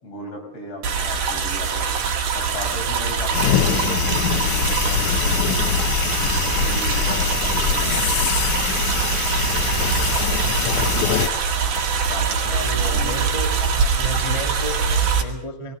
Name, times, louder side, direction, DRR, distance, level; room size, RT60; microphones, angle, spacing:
voice 1, 0.0-1.9 2.3-5.6 6.1-8.3 11.5-13.7, left 1 dB, 50° left, 1 dB, 6.9 m, -36 dB
sound 1, 0.8-15.2, right 6 dB, 85° right, 3.7 m, -23 dB
sound 2, 3.3-11.3, left 10 dB, 80° left, 2.5 m, -23 dB
voice 2, 10.1-10.8 11.7-12.0 12.4-15.7, left 1 dB, 15° left, 4 dB, 1.3 m, -34 dB
21.5 x 19.5 x 6.6 m, 0.78 s
omnidirectional pair, 3.5 m